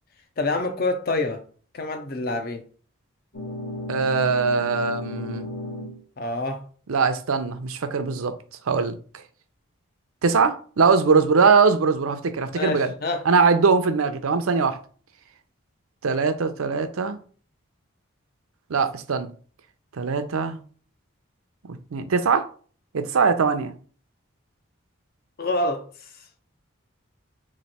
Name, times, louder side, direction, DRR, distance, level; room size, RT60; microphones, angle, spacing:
voice 1, 0.4-1.4 1.7-2.6 6.2-6.6 12.6-13.2 25.4-25.8, left 2 dB, 45° left, 0.6 m, -26 dB
sound 1, 3.3-6.0, left 1 dB, 65° left, 1.0 m, -34 dB
voice 2, 3.9-5.5 6.9-8.3 8.7-9.0 10.2-12.9 13.2-14.8 16.0-17.2 18.7-19.3 20.0-20.6 21.9-22.5 22.9-23.7, right 5 dB, 80° right, 0.5 m, -21 dB
3.1 x 2.5 x 4.1 m
head